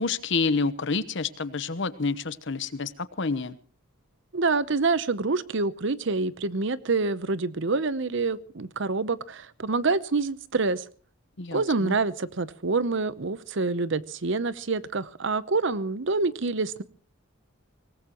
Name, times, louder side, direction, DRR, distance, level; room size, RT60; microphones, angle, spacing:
voice 1, 0.0-3.6 11.4-12.0, left 4 dB, 60° left, 15 dB, 1.1 m, -28 dB
voice 2, 4.3-10.8 11.5-16.8, right 3 dB, 60° right, 16 dB, 0.8 m, -27 dB
24.5 x 19.0 x 3.0 m, 0.40 s
head